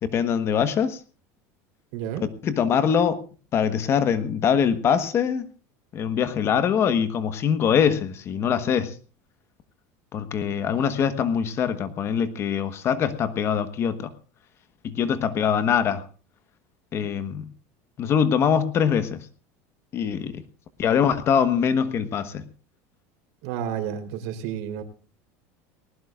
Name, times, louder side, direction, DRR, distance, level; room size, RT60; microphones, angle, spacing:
voice 1, 0.0-1.0 2.4-3.2 3.5-5.5 5.9-8.9 10.1-14.1 14.8-16.0 16.9-17.5 18.0-19.2 19.9-20.4 20.8-22.5, left 7 dB, 35° left, 11 dB, 1.3 m, -23 dB
voice 2, 1.9-2.2 23.4-24.8, right 9 dB, 70° right, 7 dB, 3.9 m, -31 dB
19.0 x 18.5 x 2.5 m, 0.37 s
cardioid pair, 150°, 8 cm